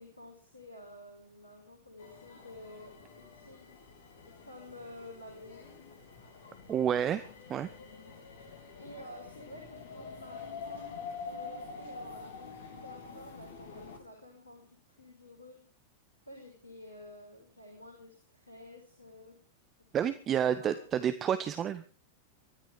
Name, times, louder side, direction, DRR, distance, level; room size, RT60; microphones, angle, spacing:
voice 1, 0.0-3.7 4.4-5.8 8.7-15.6 16.3-19.4 20.4-20.8, left 1 dB, 85° left, 1 dB, 5.6 m, -51 dB
sound 1, 2.0-14.0, left 5 dB, 60° left, 3.5 m, -47 dB
voice 2, 6.7-7.2 7.5-7.7 19.9-21.8, right 9 dB, 30° right, 12 dB, 1.0 m, -29 dB
23.5 x 14.0 x 3.6 m, 0.38 s
figure-of-eight pair, 90°, 0 cm